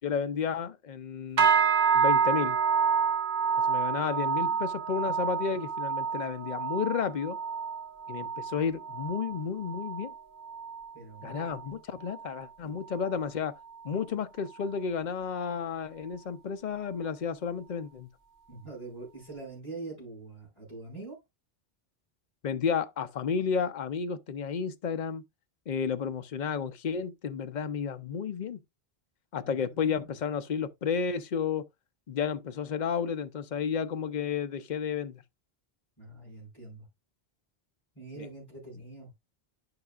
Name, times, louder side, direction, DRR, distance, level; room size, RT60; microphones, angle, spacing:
voice 1, 0.0-1.5 1.9-2.6 3.7-7.4 8.1-10.1 11.2-13.6 13.8-18.1 22.4-25.2 25.7-28.6 29.3-31.7 32.1-35.2 38.2-38.3, left 6 dB, 50° left, 0.7 m, -32 dB
sound 1, 1.4-10.9 11.2-11.7 12.1-12.4 13.0-13.1, right 6 dB, 45° right, 1.1 m, -28 dB
voice 2, 10.9-11.8 18.5-21.2 29.4-30.1 36.0-36.9 37.9-39.1, right 3 dB, 20° left, 5.3 m, -44 dB
11.0 x 5.9 x 2.4 m
omnidirectional pair, 1.1 m